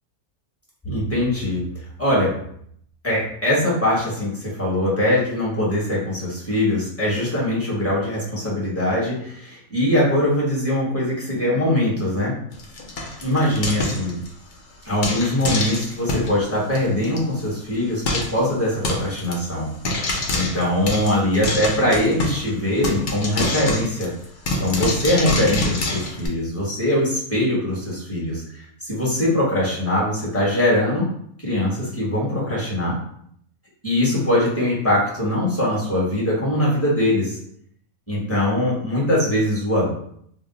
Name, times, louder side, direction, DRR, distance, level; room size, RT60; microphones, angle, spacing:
voice 1, 0.8-1.6 2.0-2.3 3.0-12.3 13.2-14.2 14.8-19.7 20.3-24.1 24.6-31.1 31.4-33.0 33.8-37.4 38.1-39.9, left 1 dB, 10° left, -6 dB, 0.8 m, -22 dB
Frying (food), 12.5-14.5 15.0-16.3 16.7-16.8 17.0-17.2 17.5-17.6 18.1-18.4 18.8-19.3 19.8-22.5 22.8-26.3, left 2 dB, 85° left, 0.4 m, -25 dB
2.7 x 2.0 x 3.7 m, 0.68 s
omnidirectional pair, 1.6 m